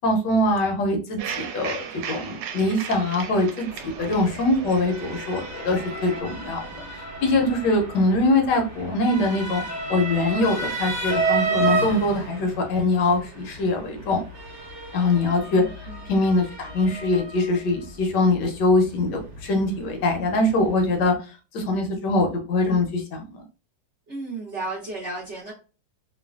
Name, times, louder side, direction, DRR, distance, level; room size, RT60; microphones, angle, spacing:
voice 1, 0.0-6.6 6.9-9.6 9.9-14.2 14.9-15.6 16.1-21.1 21.5-23.4, left 2 dB, 75° left, 3 dB, 1.2 m, -23 dB
sound 1, 1.2-6.2, right 7 dB, 80° right, 1.2 m, -36 dB
Motor vehicle (road) / Siren, 3.7-21.0, right 3 dB, 45° right, 1.3 m, -32 dB
voice 2, 15.5-16.1 24.1-25.5, right 2 dB, 60° right, -5 dB, 0.7 m, -34 dB
3.1 x 2.2 x 2.2 m, 0.33 s
omnidirectional pair, 2.0 m